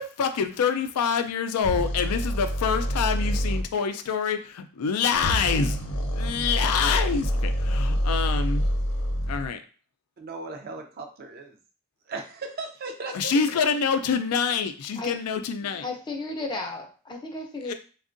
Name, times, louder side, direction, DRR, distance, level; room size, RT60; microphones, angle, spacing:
voice 1, 0.0-5.8 6.1-8.6 9.3-9.6 13.1-15.8 17.7-17.8, left 6 dB, 90° left, 8 dB, 0.4 m, -26 dB
sound 1, 1.6-3.6 5.1-9.5, equal, 60° left, 0.7 m, -26 dB
voice 2, 10.2-11.6 12.1-13.3, right 3 dB, 45° right, 4 dB, 0.4 m, -37 dB
voice 3, 15.8-17.7, left 2 dB, 20° left, 1 dB, 0.5 m, -33 dB
3.5 x 2.3 x 2.5 m, 0.37 s
head